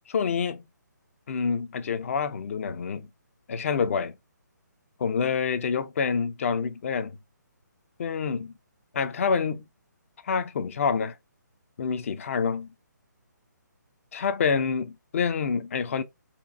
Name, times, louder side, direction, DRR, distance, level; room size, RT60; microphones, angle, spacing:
voice 1, 0.1-0.6 1.3-3.1 3.5-4.1 5.0-7.2 8.0-8.5 9.0-9.6 10.2-11.2 11.8-12.7 14.1-16.0, left 6 dB, 45° left, 0.6 m, -27 dB
4.4 x 2.5 x 2.4 m
figure-of-eight pair, 150°, 10 cm